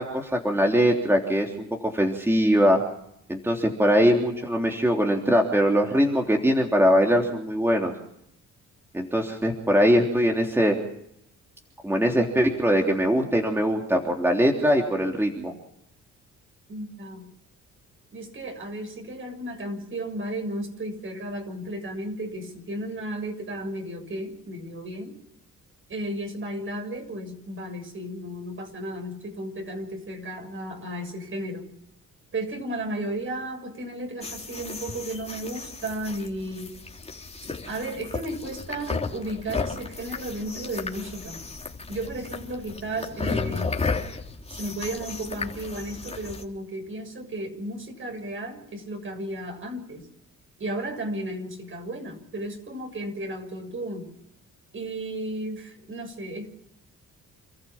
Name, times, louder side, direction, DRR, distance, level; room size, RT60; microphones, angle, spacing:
voice 1, 0.0-1.7 1.9-2.8 3.3-7.9 8.9-10.7 11.8-15.5, equal, 10° right, 1 dB, 3.5 m, -22 dB
voice 2, 16.7-17.3 18.1-25.1 25.9-31.7 32.3-36.8 37.7-41.4 41.9-43.7 44.5-50.1 50.6-54.1 54.7-56.5, right 1 dB, 45° right, 5 dB, 7.0 m, -34 dB
sound 1, 34.2-46.4, left 4 dB, 20° left, 3.6 m, -34 dB
29.0 x 14.5 x 7.4 m, 0.75 s
cardioid pair, 90°, 30 cm